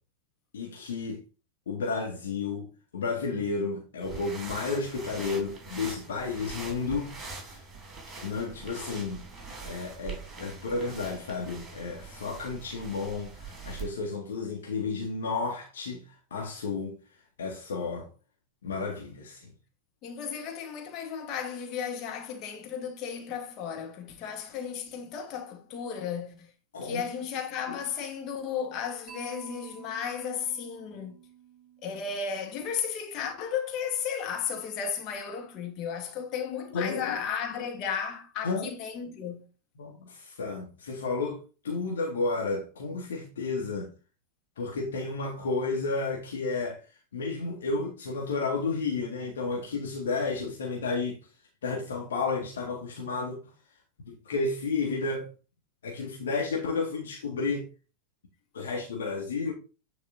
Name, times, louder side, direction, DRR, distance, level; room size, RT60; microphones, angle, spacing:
voice 1, 0.5-1.2 1.7-7.1 7.5-7.6 8.2-9.2 9.6-17.0 17.4-18.1 18.6-19.5 26.7-27.0 27.7-27.8 36.7-37.2 38.4-38.7 39.8-43.9 44.6-51.2 51.6-53.4 54.0-55.3 55.8-57.7 58.5-59.5, left 4 dB, 65° left, 1.7 m, -32 dB
sound 1, 4.0-13.9, right 4 dB, 10° right, 3.6 m, -43 dB
voice 2, 20.0-26.5 26.8-31.2 31.8-39.5, left 7 dB, 40° left, 1.3 m, -34 dB
Mallet percussion, 29.1-33.1, right 7 dB, 30° right, 4.1 m, -51 dB
9.7 x 4.7 x 2.7 m
figure-of-eight pair, 90°, 0 cm